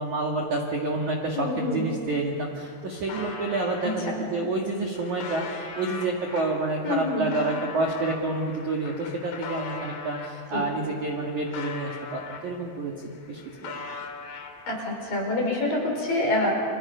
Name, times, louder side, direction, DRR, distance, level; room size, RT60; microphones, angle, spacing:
voice 1, 0.0-13.8, right 2 dB, 55° right, 0 dB, 2.4 m, -29 dB
voice 2, 1.3-1.8 3.8-4.3 6.8-7.3 10.5-10.6 14.7-16.5, left 2 dB, 45° left, 0 dB, 6.5 m, -27 dB
sound 1, 2.1-2.2 2.4-4.0 4.6-10.4 10.8-12.8 13.1-14.9, left 4 dB, 65° left, 4.5 m, -40 dB
30.0 x 29.5 x 5.7 m, 2.6 s
omnidirectional pair, 5.9 m